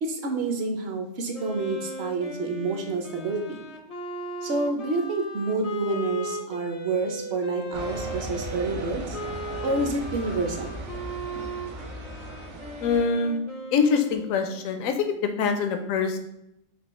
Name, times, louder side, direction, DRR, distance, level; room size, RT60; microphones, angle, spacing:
voice 1, 0.0-3.6 4.4-9.2 9.6-10.8, right 3 dB, 55° right, 4 dB, 0.9 m, -28 dB
Wind instrument woodwind instrument, 1.3-14.7, right 1 dB, 45° left, 0.5 m, -37 dB
sound 1, 7.7-13.0, right 1 dB, 80° right, 1.1 m, -37 dB
voice 2, 12.8-13.4 13.7-14.9 15.4-16.2, left 5 dB, 80° left, 7 dB, 1.0 m, -24 dB
5.4 x 2.4 x 4.1 m, 0.77 s
omnidirectional pair, 1.4 m